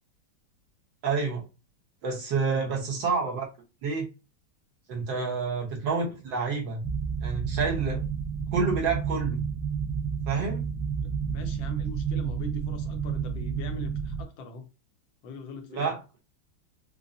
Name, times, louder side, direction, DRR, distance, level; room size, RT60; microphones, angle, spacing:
voice 1, 1.0-1.4 2.0-3.5 3.8-4.1 4.9-6.8 7.2-8.0 8.5-9.4 10.3-10.6 15.7-16.0, right 4 dB, 65° right, 1.7 m, -28 dB
sound 1, 6.8-14.2, right 6 dB, 35° right, 1.4 m, -30 dB
voice 2, 11.0-14.7 15.2-16.0, left 3 dB, 75° left, 1.4 m, -42 dB
5.3 x 2.1 x 2.5 m
omnidirectional pair, 2.2 m